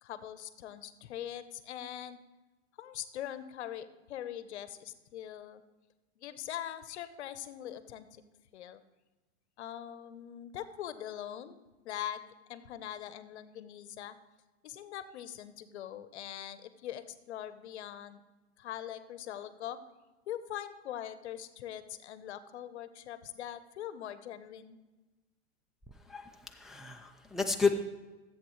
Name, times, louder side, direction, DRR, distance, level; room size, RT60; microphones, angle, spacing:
voice 1, 0.0-2.2 2.8-5.6 6.2-8.2 8.5-8.8 9.6-12.2 12.5-14.2 14.6-18.2 18.6-19.8 20.3-24.8, left 11 dB, 80° left, 13 dB, 0.9 m, -42 dB
voice 2, 26.1-27.8, left 4 dB, ahead, 2 dB, 0.5 m, -31 dB
14.5 x 7.9 x 3.2 m, 1.2 s
hypercardioid pair, 125°, 34 cm